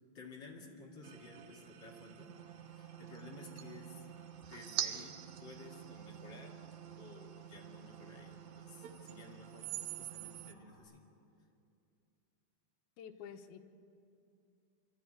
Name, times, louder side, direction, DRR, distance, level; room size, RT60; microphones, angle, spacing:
voice 1, 0.1-4.1 4.5-6.5 6.9-11.0, left 3 dB, 35° left, -1 dB, 2.2 m, -54 dB
sound 1, 1.0-10.5, right 11 dB, 75° right, 1.7 m, -46 dB
Motor vehicle (road) / Siren, 2.3-10.8, left 2 dB, 60° left, 6.4 m, -66 dB
voice 2, 13.0-13.6, left 8 dB, 85° left, 7 dB, 2.9 m, -49 dB
25.0 x 13.0 x 9.1 m, 2.6 s
omnidirectional pair, 4.2 m